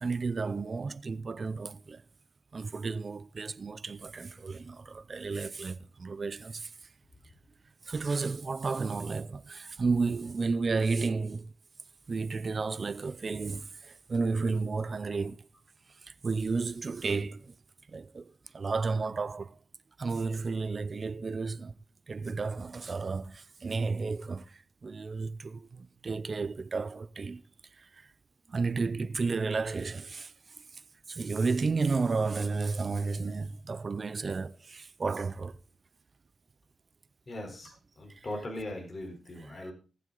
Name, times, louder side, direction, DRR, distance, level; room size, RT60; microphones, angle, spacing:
voice 1, 0.0-2.0 2.5-6.9 7.8-11.5 12.1-15.5 15.9-17.5 17.9-19.6 20.0-21.7 22.1-27.4 27.7-28.1 28.5-30.8 31.1-35.6 38.1-38.2 39.5-39.6, right 4 dB, 40° right, 0.5 m, -32 dB
voice 2, 37.3-39.7, left 1 dB, 30° left, 3.8 m, -40 dB
18.5 x 7.6 x 3.9 m
wide cardioid pair, 115°, 0 cm